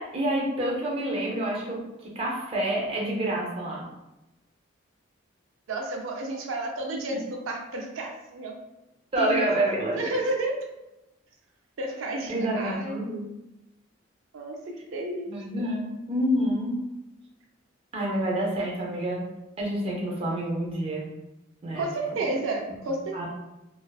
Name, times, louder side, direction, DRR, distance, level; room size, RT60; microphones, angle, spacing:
voice 1, 0.0-3.9 7.1-7.2 9.1-10.2 12.3-13.3 15.3-16.8 17.9-19.3 19.6-21.1 21.6-21.9 23.1-23.3, right 1 dB, 30° right, -3 dB, 0.5 m, -28 dB
voice 2, 5.7-8.5 9.2-9.6 9.9-10.6 11.8-13.0 14.3-15.3 21.7-23.3, right 2 dB, 90° right, 1 dB, 0.4 m, -31 dB
2.4 x 2.3 x 2.2 m, 0.95 s
head